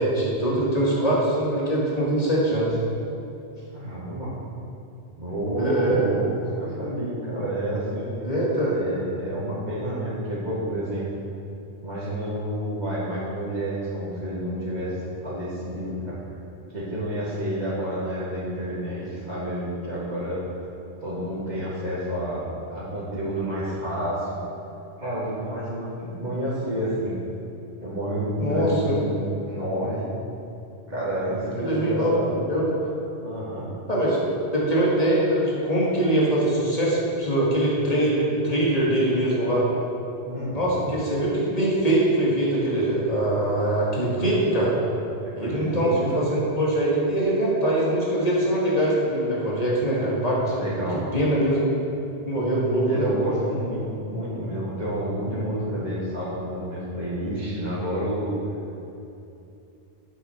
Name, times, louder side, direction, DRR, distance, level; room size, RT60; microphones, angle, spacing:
voice 1, 0.0-2.8 5.6-6.1 8.2-8.8 28.4-28.9 31.6-32.7 33.9-34.2 34.5-39.7 40.5-44.8 45.4-50.5 51.1-51.6 52.2-53.1, right 1 dB, 35° left, -6 dB, 2.4 m, -23 dB
voice 2, 3.7-4.3 5.2-8.1 8.7-11.1 11.8-16.2 16.7-20.4 21.0-24.4 25.0-27.2 27.8-30.1 30.9-32.3 33.2-33.7 40.2-40.8 45.2-46.2 50.5-51.2 52.9-58.4, right 1 dB, 40° right, -13 dB, 2.6 m, -29 dB
9.8 x 8.3 x 4.6 m, 2.8 s
omnidirectional pair, 1.1 m